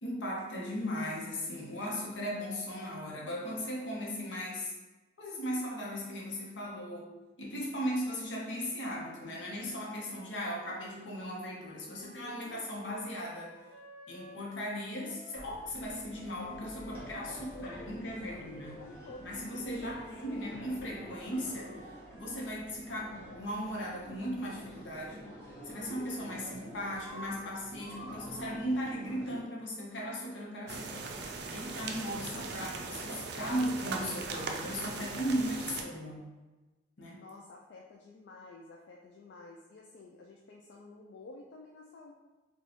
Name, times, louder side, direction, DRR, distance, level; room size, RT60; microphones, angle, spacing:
voice 1, 0.0-4.7 5.2-7.1 7.4-13.5 14.1-18.8 19.2-21.8 22.1-25.3 25.6-31.2 31.5-36.2 37.0-37.2, equal, 85° left, -3 dB, 0.8 m, -37 dB
sound 1, 9.4-15.5 16.1-22.7, left 2 dB, 35° left, 1.1 m, -55 dB
voice 2, 11.9-12.6 17.3-18.5 18.8-20.5 37.2-42.1, left 2 dB, 65° left, 0 dB, 0.3 m, -52 dB
sound 2, 15.3-29.4, equal, 15° left, 1.1 m, -49 dB
sound 3, 30.7-35.8, right 4 dB, 60° right, 0.4 m, -39 dB
3.0 x 2.3 x 4.0 m, 1.2 s
head